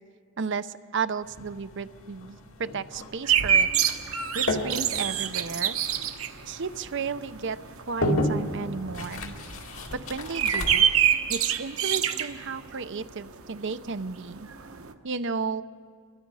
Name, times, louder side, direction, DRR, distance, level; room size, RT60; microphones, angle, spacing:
voice 1, 0.4-3.7 4.3-5.8 6.5-7.6 7.9-9.4 9.9-10.9 11.3-14.5 15.0-15.6, right 5 dB, 60° right, 12 dB, 0.7 m, -33 dB
sound 1, 1.2-11.0, left 1 dB, 85° left, 2.4 m, -34 dB
sound 2, 3.3-13.3 13.7-13.8 14.0-14.9, right 9 dB, 85° right, 1.1 m, -26 dB
29.0 x 22.5 x 4.8 m, 2.1 s
head